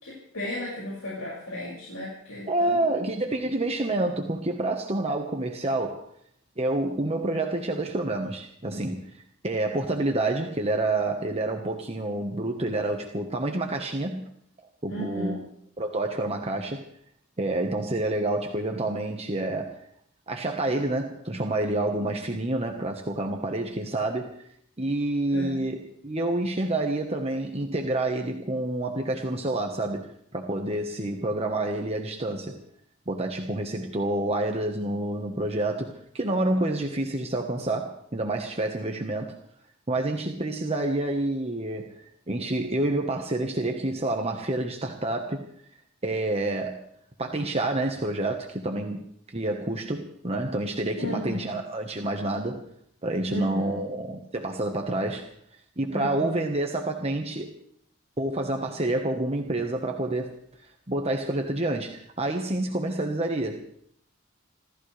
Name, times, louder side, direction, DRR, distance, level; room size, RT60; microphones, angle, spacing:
voice 1, 0.0-2.8 14.9-15.4 25.3-25.6 51.0-51.6 53.3-53.8 55.9-56.4, left 1 dB, 80° left, -6 dB, 6.1 m, -35 dB
voice 2, 2.5-6.0 6.6-9.0 9.4-14.3 14.8-15.4 15.8-16.9 17.4-19.8 20.3-24.3 24.8-32.6 33.1-39.3 39.9-45.4 46.0-46.8 47.2-49.0 49.3-52.6 53.0-55.3 55.8-57.5 58.2-60.3 60.9-63.7, right 2 dB, 30° right, 3 dB, 1.3 m, -28 dB
28.0 x 14.0 x 3.4 m, 0.67 s
head